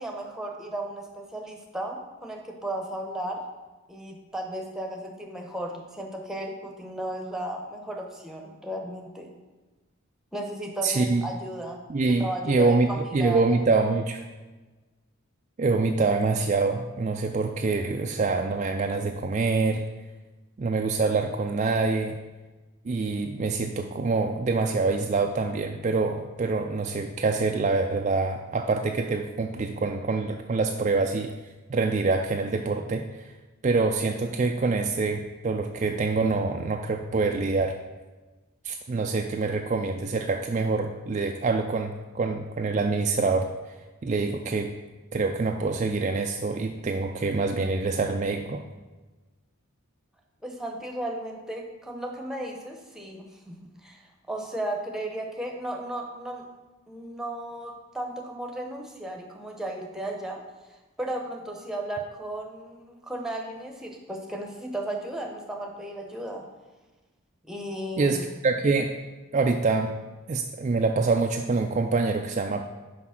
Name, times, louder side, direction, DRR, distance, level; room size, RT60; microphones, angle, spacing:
voice 1, 0.0-3.4 3.9-9.3 10.3-13.4 50.4-56.5 56.9-60.4 61.0-66.4 67.4-68.3, right 1 dB, ahead, 1 dB, 0.9 m, -35 dB
voice 2, 10.8-11.2 11.9-14.2 15.6-19.8 20.6-22.2 22.8-31.3 31.7-33.3 33.6-37.7 38.6-43.5 44.0-44.7 45.1-48.6 68.0-68.9 69.3-69.9 70.3-72.6, right 3 dB, 35° right, 4 dB, 0.3 m, -25 dB
6.0 x 5.1 x 5.8 m, 1.2 s
head